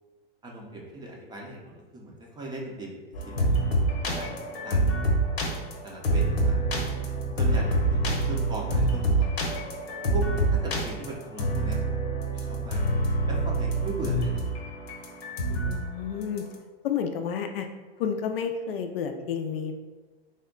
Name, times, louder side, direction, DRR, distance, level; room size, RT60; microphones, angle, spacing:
voice 1, 0.4-3.5 4.1-4.8 5.8-6.6 7.4-9.7 10.1-11.8 12.4-12.8 13.3-14.4, right 1 dB, 15° right, -2 dB, 0.5 m, -38 dB
sound 1, 3.1-15.8 16.2-16.5, right 1 dB, 85° left, 0.9 m, -26 dB
voice 2, 15.6-16.5 16.8-17.7 18.0-19.7, left 7 dB, 70° left, 6 dB, 0.5 m, -30 dB
3.5 x 2.2 x 3.7 m, 1.3 s
hypercardioid pair, 120°, 31 cm